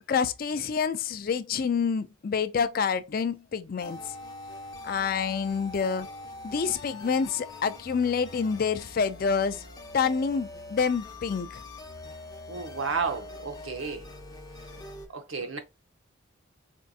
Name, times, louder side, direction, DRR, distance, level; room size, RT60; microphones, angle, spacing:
voice 1, 0.1-4.0 4.8-6.1 6.4-9.6 9.9-11.6, left 6 dB, 45° left, 0.3 m, -27 dB
sound 1, 3.8-15.1, left 2 dB, 20° left, 0.7 m, -43 dB
voice 2, 12.5-14.1 14.8-14.9 15.1-15.6, right 5 dB, 85° right, 0.8 m, -32 dB
4.3 x 2.7 x 2.4 m
head